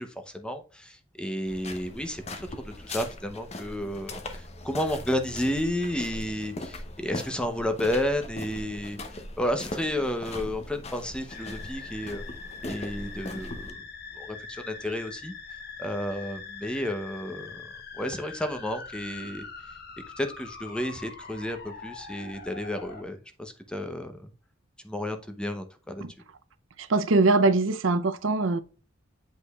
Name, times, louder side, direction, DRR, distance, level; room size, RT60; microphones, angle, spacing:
voice 1, 0.0-9.0 9.4-12.2 12.6-13.9 14.2-15.3 15.8-17.6 18.0-19.5 20.2-24.3 24.8-26.0, left 1 dB, 5° left, 0.7 m, -32 dB
sound 1, 1.5-13.7, left 2 dB, 35° left, 0.8 m, -40 dB
sound 2, 11.3-23.0, left 4 dB, 50° left, 1.1 m, -43 dB
voice 2, 26.8-28.6, right 3 dB, 75° right, 0.6 m, -22 dB
8.1 x 5.1 x 2.3 m
head